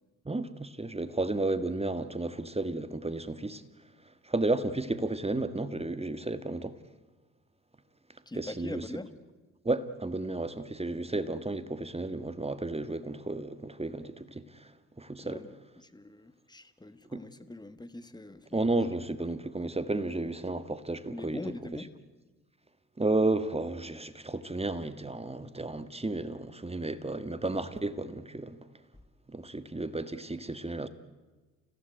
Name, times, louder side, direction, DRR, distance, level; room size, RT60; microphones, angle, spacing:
voice 1, 0.2-3.6 4.2-6.8 8.4-8.8 9.6-14.7 15.0-15.4 17.1-17.2 18.5-21.4 23.0-28.6 29.3-30.9, right 2 dB, 15° right, 1.6 m, -32 dB
voice 2, 8.3-9.2 15.2-18.6 19.0-19.2 21.1-21.9, left 1 dB, 10° left, 1.8 m, -43 dB
29.0 x 16.0 x 9.2 m
hypercardioid pair, 45°, 38 cm